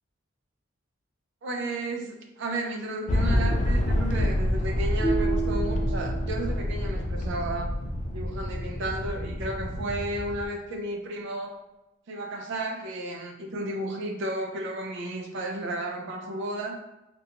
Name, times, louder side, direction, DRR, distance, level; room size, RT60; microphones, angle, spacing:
voice 1, 1.4-7.7 8.1-11.5 12.1-16.8, right 1 dB, 60° right, 2 dB, 0.4 m, -33 dB
sound 1, 3.1-10.5, left 1 dB, 35° left, 0.3 m, -27 dB
sound 2, 5.0-7.2, right 5 dB, 55° left, 0.8 m, -32 dB
2.5 x 2.2 x 2.8 m, 0.99 s
head